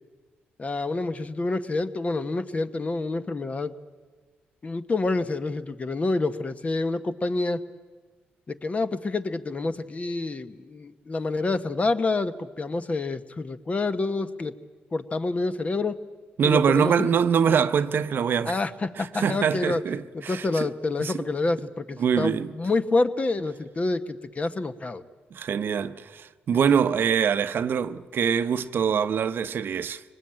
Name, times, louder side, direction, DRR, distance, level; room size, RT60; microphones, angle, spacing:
voice 1, 0.6-3.7 4.6-7.6 8.5-14.5 14.9-16.0 16.4-17.1 18.4-19.8 20.1-25.0, left 3 dB, 35° left, 1.1 m, -27 dB
voice 2, 16.4-18.6 19.0-20.7 21.0-21.2 22.0-22.5 25.3-30.0, right 7 dB, 60° right, 0.8 m, -24 dB
23.5 x 19.5 x 8.8 m
cardioid pair, 70°, 4 cm